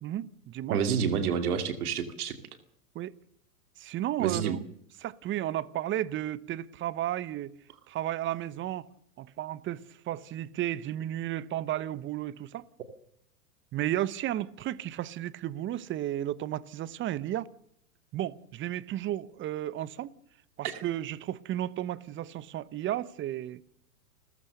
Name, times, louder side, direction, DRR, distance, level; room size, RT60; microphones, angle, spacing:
voice 1, 0.0-0.8 2.9-3.1 3.8-4.6 5.0-7.5 7.9-8.9 9.2-12.7 13.7-17.5 18.1-20.1 20.6-23.6, right 13 dB, 25° right, 0.9 m, -33 dB
voice 2, 0.7-2.4 4.2-4.6 20.6-20.8, right 7 dB, 70° right, 2.6 m, -28 dB
29.0 x 14.5 x 6.7 m
hypercardioid pair, 115°, 46 cm